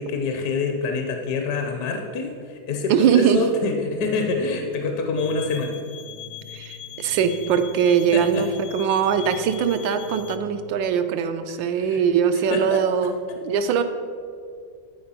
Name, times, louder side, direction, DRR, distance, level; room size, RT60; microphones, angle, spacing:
voice 1, 0.0-5.8 8.1-8.5 11.5-12.0 12.5-13.1, left 4 dB, 65° left, 3 dB, 1.1 m, -26 dB
voice 2, 2.9-3.4 6.5-8.5 8.7-13.1 13.4-13.8, right 7 dB, 90° right, 8 dB, 1.4 m, -21 dB
sound 1, 4.0-10.8, left 2 dB, 70° right, 1.2 m, -45 dB
sound 2, 5.2-10.4, left 11 dB, 80° left, 0.7 m, -41 dB
11.0 x 4.3 x 5.5 m, 2.2 s
omnidirectional pair, 2.0 m